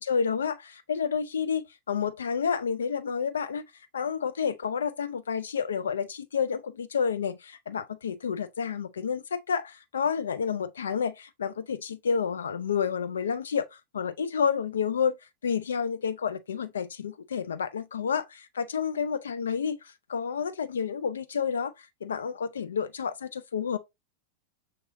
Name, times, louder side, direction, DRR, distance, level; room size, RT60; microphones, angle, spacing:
voice 1, 0.0-3.7 3.9-15.2 15.4-19.8 20.1-23.8, left 6 dB, 70° left, 0.4 m, -30 dB
6.3 x 3.0 x 2.6 m
figure-of-eight pair, 90°, 0 cm